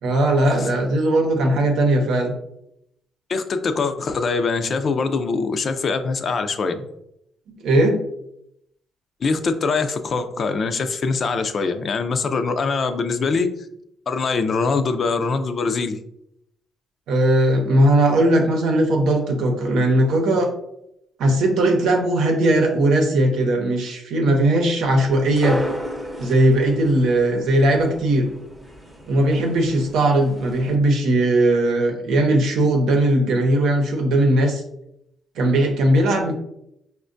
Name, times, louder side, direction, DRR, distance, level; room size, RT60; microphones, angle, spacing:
voice 1, 0.0-2.3 7.6-8.0 17.1-20.5 21.2-25.6 26.2-28.3 29.1-34.6 35.4-36.3, right 1 dB, 85° right, 3 dB, 0.7 m, -18 dB
voice 2, 3.3-6.8 9.2-13.5 14.1-16.0, left 4 dB, 50° left, 9 dB, 0.4 m, -23 dB
sound 1, 25.0-30.8, equal, 15° right, 0.7 m, -33 dB
5.3 x 2.2 x 2.5 m, 0.78 s
cardioid pair, 90°, 0 cm